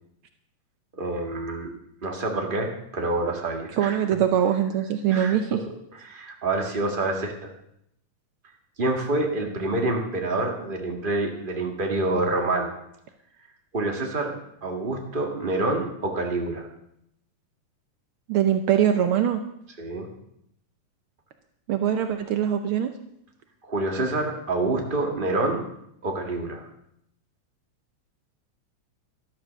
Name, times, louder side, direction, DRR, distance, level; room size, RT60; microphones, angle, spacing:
voice 1, 1.0-1.7 2.0-4.0 5.1-5.4 6.0-7.5 8.8-12.7 13.7-14.3 14.6-16.7 19.8-20.1 23.6-25.6 26.0-26.7, right 2 dB, 20° right, 2 dB, 1.5 m, -27 dB
voice 2, 3.8-5.6 18.3-19.4 21.7-22.9, right 9 dB, 85° right, 7 dB, 1.1 m, -22 dB
12.5 x 12.5 x 6.4 m, 0.76 s
omnidirectional pair, 3.4 m